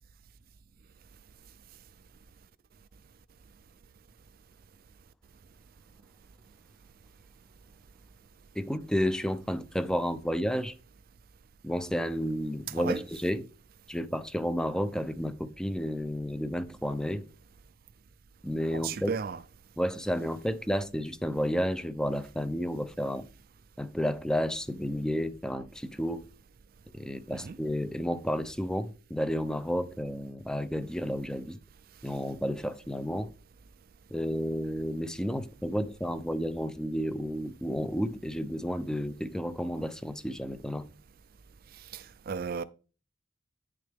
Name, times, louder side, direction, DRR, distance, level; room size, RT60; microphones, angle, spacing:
voice 1, 8.5-10.7 11.6-13.5 13.9-17.2 18.4-19.2 19.8-23.3 23.8-26.2 26.9-31.6 32.0-33.3 34.1-40.9, equal, 5° left, 0.5 m, -31 dB
voice 2, 12.7-13.0 18.7-19.4 27.3-27.6 41.9-42.6, right 6 dB, 50° right, 0.4 m, -34 dB
9.1 x 6.6 x 3.4 m
head